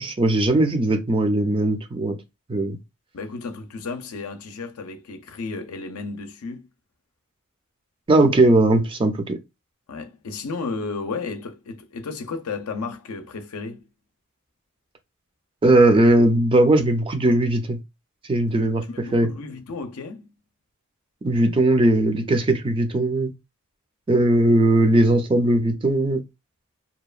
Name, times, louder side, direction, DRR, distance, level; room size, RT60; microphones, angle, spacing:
voice 1, 0.0-2.2 2.5-2.8 8.1-9.4 15.6-17.8 18.3-19.3 21.2-23.3 24.1-26.2, right 1 dB, 25° right, 0.4 m, -19 dB
voice 2, 3.1-6.7 9.9-13.9 18.9-20.3, left 4 dB, 80° left, 0.5 m, -33 dB
2.8 x 2.2 x 2.4 m
head